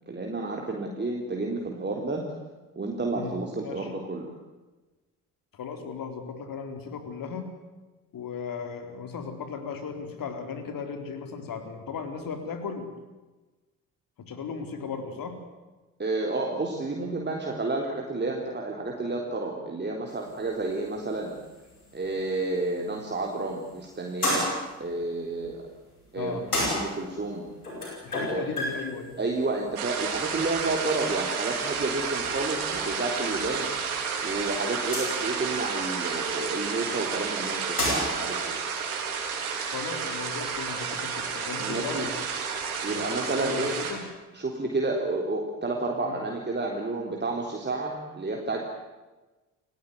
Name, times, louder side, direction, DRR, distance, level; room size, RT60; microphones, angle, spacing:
voice 1, 0.1-2.2 2.8-4.3 16.0-21.3 21.9-24.5 24.8-25.7 26.1-26.4 26.7-27.5 28.3-28.6 29.2-33.7 34.2-38.6 41.6-42.1 42.8-43.8 44.3-48.6, right 2 dB, 25° right, 0 dB, 3.9 m, -30 dB
voice 2, 5.5-7.6 8.1-12.9 14.2-15.4 26.1-26.5 28.0-29.1 39.7-42.1 42.9-44.1 46.0-46.3, left 5 dB, 50° left, 7 dB, 4.2 m, -36 dB
sound 1, 20.1-38.3, left 1 dB, 85° left, 5.3 m, -36 dB
sound 2, 29.8-43.9, right 6 dB, 80° right, 3.5 m, -31 dB
29.0 x 17.0 x 9.5 m, 1.2 s
figure-of-eight pair, 45°, 44 cm